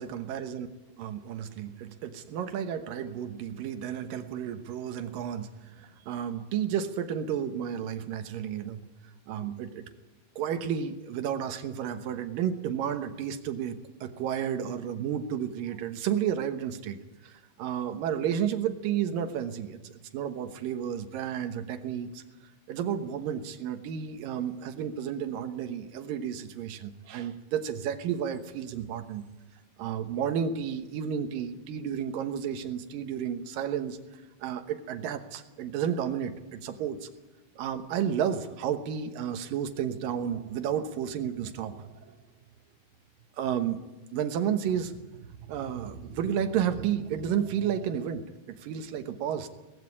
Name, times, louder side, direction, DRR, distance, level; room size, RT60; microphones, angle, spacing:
voice 1, 0.0-0.7 1.0-8.9 9.3-9.9 10.4-22.2 22.7-29.3 29.8-34.0 34.4-37.1 37.6-42.2 43.4-43.8 44.1-49.5, right 8 dB, 65° right, 8 dB, 2.4 m, -32 dB
19.5 x 15.0 x 9.8 m, 1.1 s
omnidirectional pair, 5.1 m